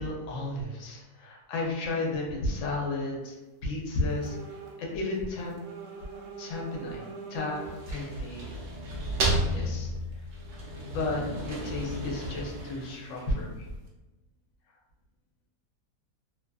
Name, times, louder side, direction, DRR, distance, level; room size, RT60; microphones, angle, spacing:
voice 1, 0.0-3.4 3.6-5.5 6.4-8.5 9.2-9.3 9.5-10.2 10.8-13.7, left 2 dB, 65° left, -1 dB, 0.9 m, -33 dB
sound 1, 4.1-4.8 5.1-8.0, right 6 dB, 90° right, 1.2 m, -43 dB
sound 2, 7.5-13.6, right 1 dB, 65° right, 0.7 m, -33 dB
2.6 x 2.3 x 2.3 m, 1.1 s
omnidirectional pair, 1.7 m